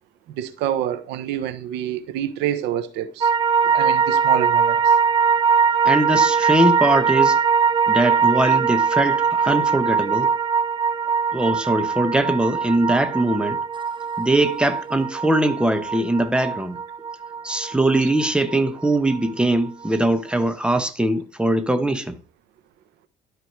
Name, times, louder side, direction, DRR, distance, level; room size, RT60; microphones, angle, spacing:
voice 1, 0.4-3.3 3.6-5.0, right 11 dB, 90° right, 1.3 m, -27 dB
sound 1, 3.2-19.6 19.8-19.9, right 6 dB, 30° right, 0.5 m, -21 dB
voice 2, 5.8-7.4 7.9-10.3 11.3-13.6 14.2-16.8 17.4-22.2, right 1 dB, 5° right, 1.3 m, -21 dB
12.5 x 5.0 x 4.8 m
cardioid pair, 110°, 17 cm